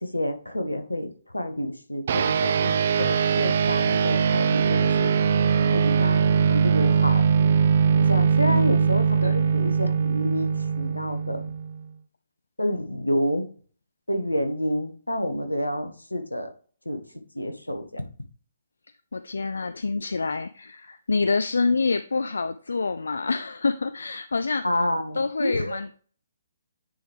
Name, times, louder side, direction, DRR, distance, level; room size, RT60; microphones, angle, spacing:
voice 1, 0.0-5.1 5.6-7.3 8.0-10.5 10.8-11.4 12.6-13.5 14.1-16.5 16.8-17.0 17.3-18.0 24.6-25.8, equal, 85° left, 8 dB, 1.0 m, -29 dB
sound 1, 2.1-11.8, right 6 dB, 50° right, 0.4 m, -21 dB
voice 2, 8.5-8.9 9.2-9.5 19.1-25.9, left 4 dB, 70° left, 11 dB, 0.3 m, -27 dB
9.2 x 3.4 x 3.2 m, 0.43 s
figure-of-eight pair, 130°, 0 cm